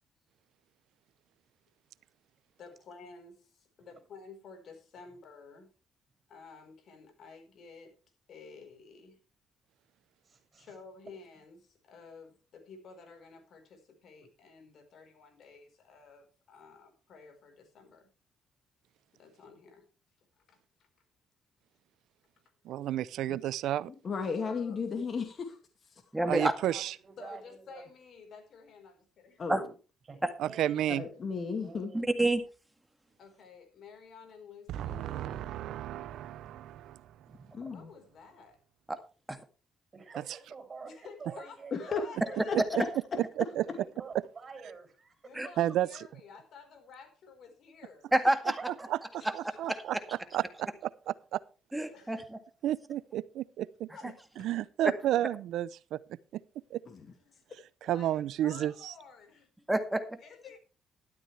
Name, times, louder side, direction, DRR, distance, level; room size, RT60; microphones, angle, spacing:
voice 1, 2.6-5.7 6.3-8.0 8.3-9.2 10.6-18.1 19.2-19.9 20.4-20.6 24.3-24.8 27.2-29.4 33.2-35.5 37.7-38.6 40.8-42.5 45.2-48.1 51.9-52.1 53.9-54.1 54.4-54.5 57.3-57.4 57.8-59.5 60.2-60.6, left 5 dB, 65° left, 4.5 m, -52 dB
voice 2, 10.2-10.8 26.2-27.9 30.1-30.8 31.6-32.1 37.2-37.6 39.9-42.4 43.7-45.3 48.6-49.3 49.9-50.2 55.1-55.5, right 4 dB, 35° right, 7.2 m, -48 dB
voice 3, 22.6-23.9 26.3-26.9 30.4-31.0 34.7-37.3 43.6-43.7 45.6-46.1 48.9-49.0 49.3-50.0 50.3-50.7 51.3-51.4 52.6-53.9 54.4-56.4 56.7-56.8 57.8-58.9, right 12 dB, 80° right, 0.6 m, -32 dB
voice 4, 24.0-26.1 29.4-29.7 30.9-31.9 37.5-37.9 41.7-42.1 42.5-42.9 49.2-49.3 56.9-57.4, left 5 dB, 45° left, 2.3 m, -35 dB
voice 5, 26.1-26.5 29.5-29.6 30.2-30.3 31.9-32.4 34.9-35.0 38.9-39.0 45.3-45.5 48.1-48.6 49.2-49.3 49.7-49.8 51.7-52.4 54.0-54.1 54.8-54.9 59.7-60.2, right 1 dB, 10° right, 1.9 m, -28 dB
12.5 x 12.5 x 3.4 m
cardioid pair, 90°, 0 cm